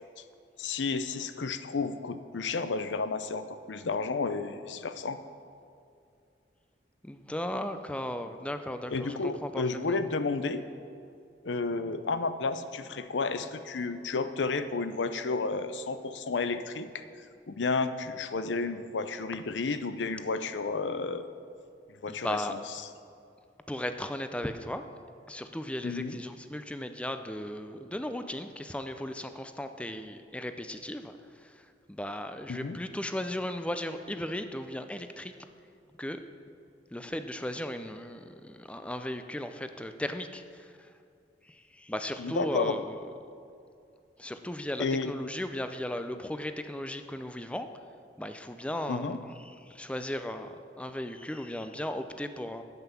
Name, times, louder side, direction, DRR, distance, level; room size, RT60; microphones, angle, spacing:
voice 1, 0.6-5.2 8.9-10.6 11.4-17.0 17.5-21.3 22.0-22.8 25.8-26.2 32.5-32.8 42.2-42.8 44.8-45.1 48.9-49.2, left 4 dB, 80° left, 11 dB, 0.6 m, -32 dB
voice 2, 7.0-10.0 22.1-22.5 23.7-24.8 25.3-31.1 31.9-35.3 36.0-36.2 36.9-40.6 41.8-43.0 44.2-47.7 48.2-49.2 49.7-52.6, left 1 dB, 5° left, 9 dB, 0.5 m, -36 dB
9.3 x 7.9 x 7.0 m, 2.5 s
head